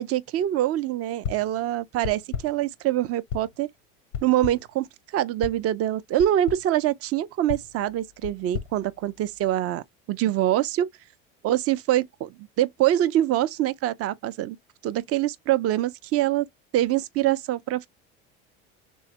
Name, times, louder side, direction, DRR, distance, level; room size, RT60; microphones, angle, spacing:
voice 1, 0.0-3.7 4.2-10.9 11.4-12.3 12.6-14.6 14.8-16.5 16.7-17.9, right 13 dB, 45° right, 0.5 m, -24 dB
sound 1, 1.2-1.6 2.0-2.7 3.3-3.7 4.1-4.8 5.4-5.7 6.2-6.7 7.5-9.6, left 8 dB, 90° left, 0.7 m, -36 dB
3.5 x 3.1 x 2.8 m
supercardioid pair, 85°, 33 cm